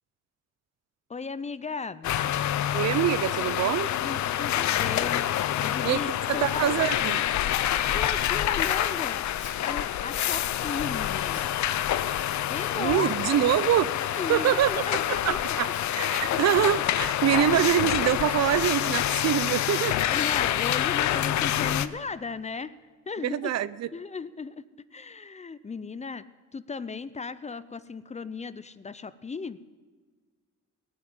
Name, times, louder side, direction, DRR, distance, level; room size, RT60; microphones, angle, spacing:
voice 1, 1.1-2.1 4.0-6.7 7.9-9.2 9.6-11.5 12.4-13.4 14.2-15.6 16.2-16.4 20.0-22.7 23.1-23.5 23.9-24.6 24.9-26.2 26.5-29.6, left 4 dB, 25° left, 15 dB, 0.5 m, -36 dB
sound 1, 2.0-21.9, left 12 dB, 70° left, 0.7 m, -27 dB
voice 2, 2.7-3.9 5.8-7.2 12.7-13.9 14.3-14.7 15.1-20.0 23.2-23.9, right 11 dB, 60° right, 18 dB, 0.5 m, -25 dB
Writing, 4.6-4.9 5.2-9.8 10.4-11.6 11.9-12.3 12.9-16.3, left 4 dB, 40° left, 3.5 m, -51 dB
18.0 x 6.2 x 9.6 m, 1.5 s
cardioid pair, 90°, 30 cm